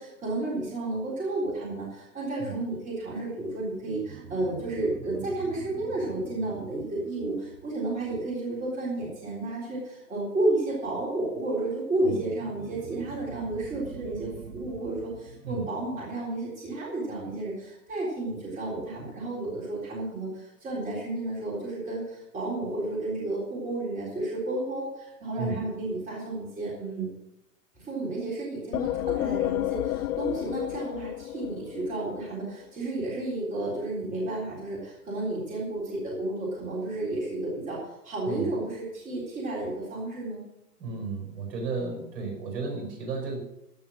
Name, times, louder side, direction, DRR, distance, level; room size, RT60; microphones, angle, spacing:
voice 1, 0.0-27.1 27.8-40.4, right 2 dB, 15° right, -6 dB, 3.7 m, -32 dB
sound 1, 3.8-8.8 12.2-17.1, right 6 dB, 75° right, 1.3 m, -46 dB
sound 2, 28.7-32.3, left 14 dB, 60° left, 0.7 m, -30 dB
voice 2, 38.3-38.6 40.8-43.4, right 4 dB, 50° right, 2 dB, 5.4 m, -34 dB
15.0 x 6.6 x 6.3 m, 0.87 s
hypercardioid pair, 135°, 49 cm